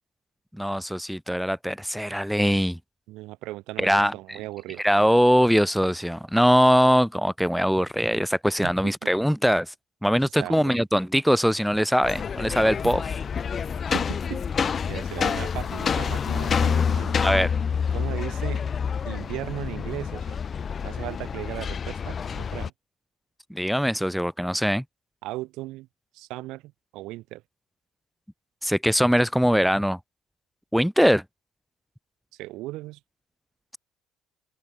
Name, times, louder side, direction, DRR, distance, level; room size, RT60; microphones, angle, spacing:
voice 1, 0.5-2.8 3.8-4.4 4.8-9.7 10.0-13.0 17.2-17.5 23.5-24.8 28.6-30.0 30.7-31.2, equal, ahead, 1.1 m, -22 dB
voice 2, 3.1-4.8 8.1-8.2 8.6-9.1 10.4-10.8 12.8-13.0 13.9-14.6 14.9-17.2 17.9-18.6 19.0-20.4 20.8-22.7 25.2-25.9 26.1-27.4 32.3-33.0, right 18 dB, 75° right, 4.4 m, -37 dB
sound 1, 12.0-22.7, left 6 dB, 40° left, 1.5 m, -27 dB
open air
supercardioid pair, 75°, 0 cm